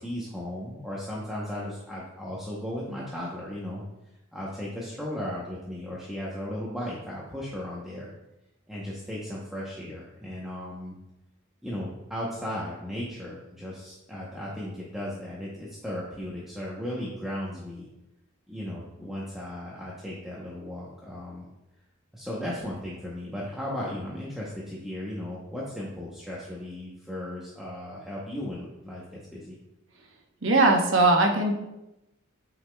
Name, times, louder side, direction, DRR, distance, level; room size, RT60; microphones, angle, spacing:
voice 1, 0.0-3.8 4.3-8.1 8.7-11.0 11.6-17.9 18.5-21.5 22.1-29.6, left 1 dB, ahead, -6 dB, 0.8 m, -36 dB
voice 2, 30.4-31.5, right 2 dB, 70° right, 2 dB, 1.0 m, -20 dB
9.1 x 5.0 x 2.2 m, 0.94 s
head